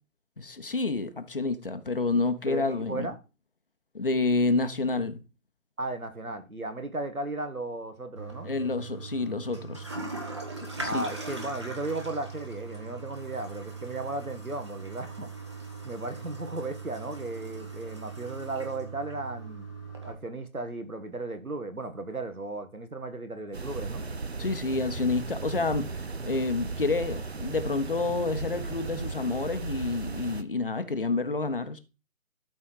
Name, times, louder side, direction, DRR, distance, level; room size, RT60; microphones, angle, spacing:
voice 1, 0.4-3.1 3.9-5.2 8.4-9.9 10.8-11.0 24.4-25.8 26.2-31.8, left 3 dB, 40° left, 1.0 m, -29 dB
voice 2, 2.5-3.2 5.8-8.5 10.8-15.3 15.8-19.7 20.0-24.0, right 2 dB, 85° right, 2.0 m, -35 dB
Toilet flush, 8.1-20.1, right 3 dB, 20° right, 1.1 m, -40 dB
sound 1, 23.5-30.4, right 3 dB, 50° right, 0.8 m, -36 dB
12.5 x 4.3 x 4.7 m
figure-of-eight pair, 155°, 42 cm